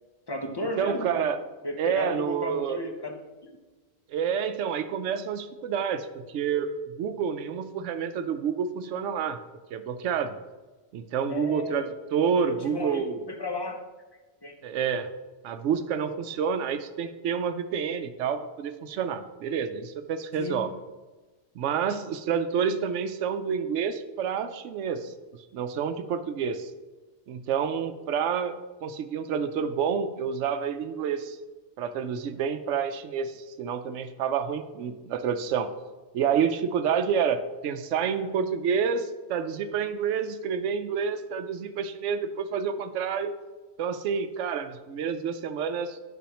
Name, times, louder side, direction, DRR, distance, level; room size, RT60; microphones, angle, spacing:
voice 1, 0.3-1.2 1.6-3.6 11.3-11.9 12.5-13.8 14.4-14.5 20.4-20.7 37.9-38.3, left 1 dB, 25° left, 3 dB, 0.7 m, -34 dB
voice 2, 0.8-1.4 1.8-2.8 4.1-9.4 9.7-10.4 10.9-11.9 12.1-13.2 14.6-15.1 15.4-20.7 21.5-25.1 25.5-26.7 27.3-28.5 28.8-31.4 31.8-35.7 36.1-43.3 43.8-46.0, right 7 dB, 85° right, 10 dB, 0.9 m, -28 dB
10.0 x 6.2 x 2.9 m, 1.2 s
omnidirectional pair, 1.2 m